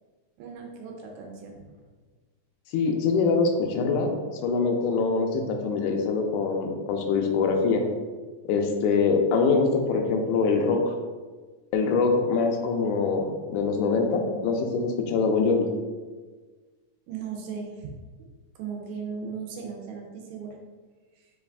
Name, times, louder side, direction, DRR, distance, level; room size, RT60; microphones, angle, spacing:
voice 1, 0.4-1.7 17.1-17.9 18.2-18.3 18.6-20.6 21.2-21.3, right 6 dB, 80° right, 0 dB, 1.8 m, -37 dB
voice 2, 2.7-4.1 4.4-7.8 8.5-10.9 11.7-15.7, left 4 dB, 85° left, 3 dB, 2.0 m, -24 dB
5.0 x 2.3 x 3.3 m, 1.4 s
omnidirectional pair, 3.4 m